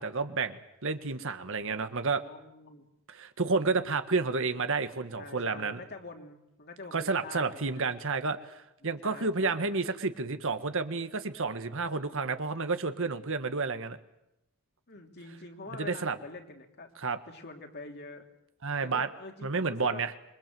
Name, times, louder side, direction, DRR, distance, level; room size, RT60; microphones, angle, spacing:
voice 1, 0.0-2.2 3.1-5.8 6.9-14.0 15.8-16.1 17.0-17.2 18.6-19.1 19.4-20.1, right 4 dB, 65° right, 9 dB, 1.6 m, -30 dB
voice 2, 1.7-2.9 3.5-3.7 5.2-7.9 8.8-9.7 14.9-16.9 17.3-18.2 18.8-20.0, left 2 dB, 50° left, 3 dB, 3.1 m, -46 dB
27.0 x 23.0 x 7.8 m, 0.86 s
head